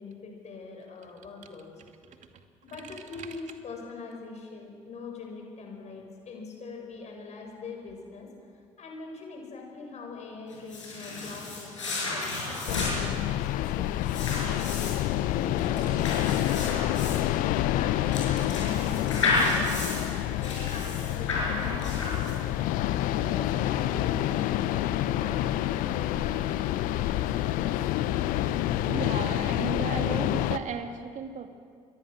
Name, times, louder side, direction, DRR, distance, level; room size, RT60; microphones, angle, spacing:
voice 1, 0.0-1.7 2.6-8.3 8.8-13.3 13.5-14.7 15.3-17.2 17.8-22.4 23.1-27.7, left 4 dB, 45° left, 1 dB, 7.1 m, -42 dB
sound 1, 10.5-22.6, left 3 dB, 85° left, 6.9 m, -32 dB
sound 2, 12.7-30.6, left 13 dB, 60° left, 0.9 m, -28 dB
voice 2, 28.9-31.5, right 6 dB, 50° right, 6 dB, 2.4 m, -35 dB
27.0 x 22.5 x 6.5 m, 2.2 s
figure-of-eight pair, 50°, 16 cm